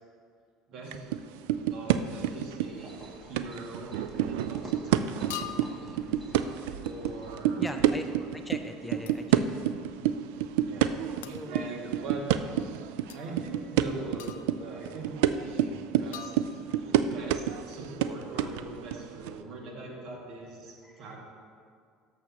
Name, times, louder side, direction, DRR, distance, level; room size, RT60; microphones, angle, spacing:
voice 1, 0.7-1.0 1.7-3.0 3.2-8.3 10.0-10.1 10.6-10.9 11.5-12.2 13.1-21.2, right 2 dB, 55° right, -1 dB, 2.0 m, -42 dB
sound 1, 0.9-1.2 1.5-3.0 3.4-8.6 8.9-19.4, right 11 dB, 80° right, 0.3 m, -28 dB
sound 2, 2.6-7.5, equal, 20° right, 2.2 m, -49 dB
sound 3, 4.0-4.2 5.3-5.9 9.1-9.3 11.2-11.5 13.1-13.2 14.2-14.7 16.1-16.9, left 11 dB, 90° left, 0.4 m, -42 dB
voice 2, 7.6-8.0 8.3-9.6 11.2-11.9 20.8-21.2, left 1 dB, 10° left, 6 dB, 0.6 m, -41 dB
13.0 x 6.3 x 2.9 m, 2.2 s
supercardioid pair, 100°, 0 cm